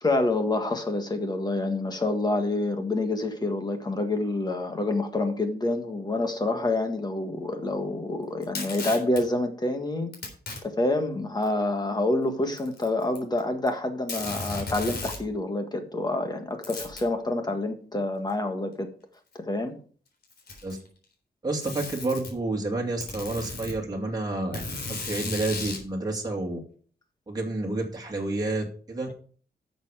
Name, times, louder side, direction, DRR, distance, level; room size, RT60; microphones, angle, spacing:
voice 1, 0.0-10.1 10.6-18.9 19.4-19.7, left 2 dB, 25° left, 6 dB, 1.7 m, -27 dB
Packing tape duct tape, 8.4-9.2 10.1-10.6 11.4-11.5 12.5-13.4 13.7-13.8 14.1-15.3 16.6-17.1 18.3-18.4 19.3-19.4 20.2-20.9 21.6-22.3 23.0-23.8 24.5-25.9, left 3 dB, 70° left, 3.7 m, -35 dB
voice 2, 21.4-24.6 24.9-26.6 27.3-29.1, right 2 dB, 20° right, -1 dB, 2.3 m, -29 dB
11.0 x 7.0 x 4.9 m, 0.44 s
wide cardioid pair, 160°, 17 cm